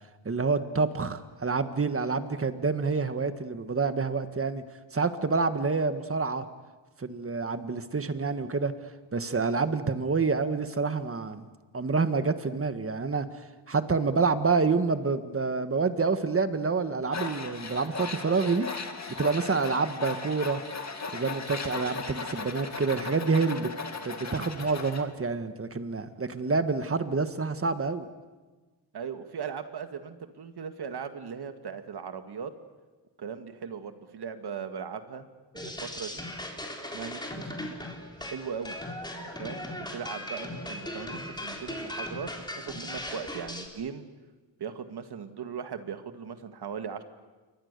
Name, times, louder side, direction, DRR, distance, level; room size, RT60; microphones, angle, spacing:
voice 1, 0.2-4.6 4.9-6.4 7.0-8.7 9.1-11.5 11.7-13.3 13.7-18.7 19.2-20.6 21.1-23.7 24.0-28.1, right 4 dB, 30° right, 10 dB, 1.7 m, -27 dB
Tools, 17.1-25.0, left 4 dB, 40° left, 2.3 m, -37 dB
voice 2, 28.9-32.5 33.2-35.3 35.5-36.2 36.9-37.7 38.3-38.8 39.1-44.1 44.6-47.0, right 6 dB, 65° right, 8 dB, 2.0 m, -38 dB
sound 1, 35.5-43.7, left 1 dB, 10° left, 3.8 m, -38 dB
28.0 x 23.5 x 6.8 m, 1.3 s
cardioid pair, 95°, 42 cm